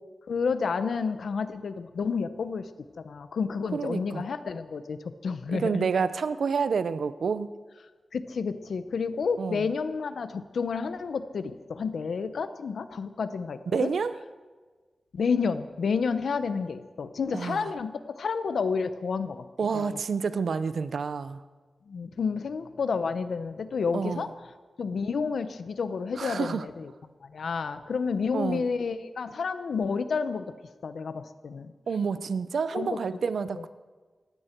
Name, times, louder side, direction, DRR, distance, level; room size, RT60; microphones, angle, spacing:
voice 1, 0.3-2.7 3.0-5.9 8.1-13.9 15.1-19.4 19.7-20.0 21.9-24.3 24.8-26.9 27.2-30.5 30.8-31.7 32.7-33.0 33.6-33.7, left 5 dB, 85° left, 11 dB, 0.9 m, -30 dB
voice 2, 3.7-4.2 5.5-7.5 9.4-9.7 13.7-14.1 17.3-17.7 19.6-21.4 23.9-24.3 26.2-26.6 28.3-28.7 31.9-33.7, right 5 dB, 85° right, 13 dB, 0.7 m, -29 dB
19.0 x 15.5 x 4.6 m, 1.4 s
wide cardioid pair, 140°, 0 cm